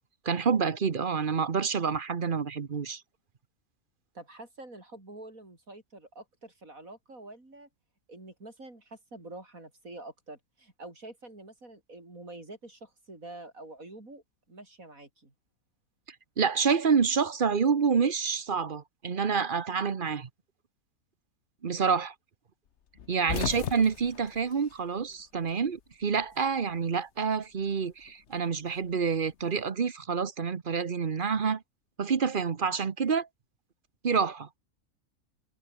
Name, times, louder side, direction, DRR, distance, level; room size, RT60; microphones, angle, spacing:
voice 1, 0.2-3.0 16.4-20.3 21.6-22.1 23.1-31.6 32.0-33.3 34.0-34.5, right 6 dB, 40° right, 1.0 m, -28 dB
voice 2, 4.1-7.7 8.1-15.3 23.3-23.6, right 2 dB, 65° right, 6.3 m, -47 dB
sound 1, 23.0-25.5 25.8-26.9 28.0-29.5, left 8 dB, 55° left, 1.1 m, -38 dB
omnidirectional pair, 1.6 m